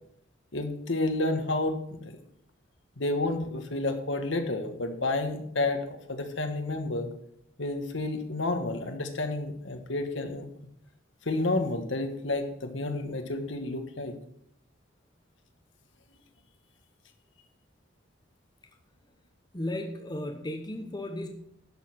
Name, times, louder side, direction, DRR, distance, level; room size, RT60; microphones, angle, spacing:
voice 1, 0.5-2.1 3.0-7.1 7.6-10.5 11.2-14.2, left 2 dB, 70° left, 6 dB, 1.5 m, -30 dB
voice 2, 19.5-21.3, left 1 dB, 20° left, 4 dB, 1.0 m, -34 dB
11.0 x 6.6 x 6.3 m, 0.74 s
head